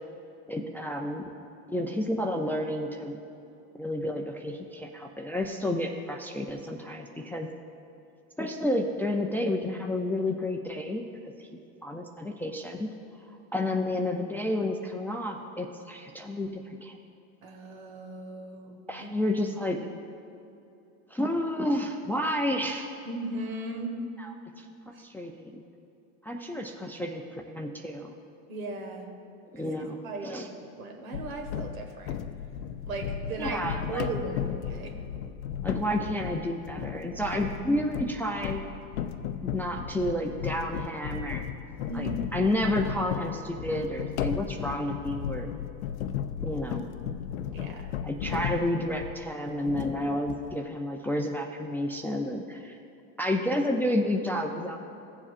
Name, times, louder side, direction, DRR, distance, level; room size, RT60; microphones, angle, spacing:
voice 1, 0.5-1.3 1.7-3.2 3.7-7.5 8.4-11.0 11.4-11.5 11.8-12.9 13.5-17.0 18.9-19.8 21.1-23.0 24.2-25.6 26.2-28.1 29.5-30.5 33.4-34.0 35.6-38.6 39.4-41.5 41.9-45.5 46.4-46.9 48.0-52.8 53.2-54.8, left 1 dB, 5° left, 2 dB, 0.3 m, -30 dB
voice 2, 17.4-19.1 23.1-24.0 28.5-29.1 29.5-30.4 30.8-32.2 32.9-33.6 33.9-35.0 41.9-42.5 47.5-47.9, right 2 dB, 85° right, 2 dB, 1.7 m, -37 dB
sound 1, 31.1-49.3 49.7-50.6, left 9 dB, 85° left, 0.6 m, -35 dB
16.0 x 7.1 x 2.5 m, 2.9 s
supercardioid pair, 110°, 40 cm